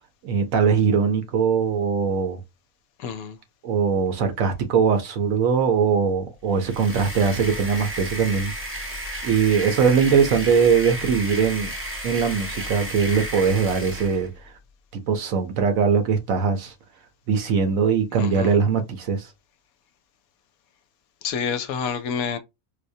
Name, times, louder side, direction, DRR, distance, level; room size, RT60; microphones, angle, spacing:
voice 1, 0.2-2.4 3.6-8.5 9.2-11.7 12.0-14.5 15.1-16.7 17.3-19.3, right 6 dB, 65° right, 1.1 m, -21 dB
voice 2, 3.0-3.4 18.2-18.6 21.2-22.4, left 6 dB, 75° left, 1.0 m, -28 dB
sound 1, 6.5-14.3, equal, 10° right, 0.6 m, -33 dB
4.8 x 2.1 x 2.6 m
omnidirectional pair, 1.6 m